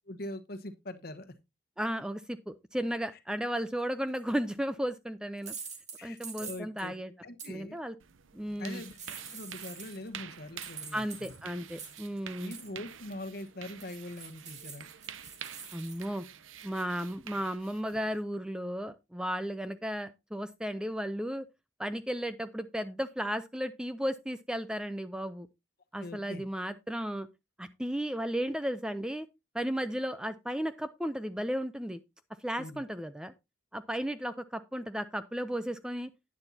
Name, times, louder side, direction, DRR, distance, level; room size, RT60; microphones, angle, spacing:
voice 1, 0.1-1.3 6.0-6.9 7.2-7.8 8.6-9.0 9.3-11.3 12.4-14.9 26.0-26.4 32.6-32.8, left 1 dB, 50° left, 1.1 m, -42 dB
voice 2, 1.8-5.5 6.0-7.1 7.5-7.9 8.3-8.8 10.9-12.5 15.7-16.2 16.6-21.5 21.8-25.5 25.9-27.3 27.6-29.3 29.5-32.0 32.4-33.3 33.7-36.1, equal, 5° right, 0.4 m, -34 dB
sound 1, 4.1-4.4 5.4-6.9 7.4-7.5 8.7-10.1 10.6-12.2 12.5-12.8 13.8-16.1, right 6 dB, 35° right, 2.1 m, -45 dB
sound 2, 8.0-18.2, right 9 dB, 85° right, 0.7 m, -48 dB
11.0 x 9.8 x 2.7 m
head